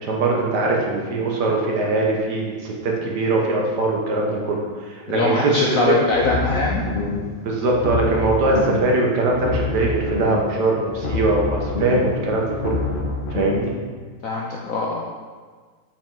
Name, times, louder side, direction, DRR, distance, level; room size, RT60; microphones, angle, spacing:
voice 1, 0.0-4.6 5.1-5.9 7.4-12.8 13.3-13.7, right 2 dB, 65° right, -1 dB, 1.6 m, -21 dB
voice 2, 5.1-6.9 14.2-15.0, left 3 dB, 60° left, -2 dB, 0.9 m, -22 dB
sound 1, 6.1-7.4 7.7-9.0 9.3-10.6 10.9-13.7, left 3 dB, 40° left, 0.8 m, -26 dB
7.4 x 4.8 x 3.8 m, 1.5 s
omnidirectional pair, 2.0 m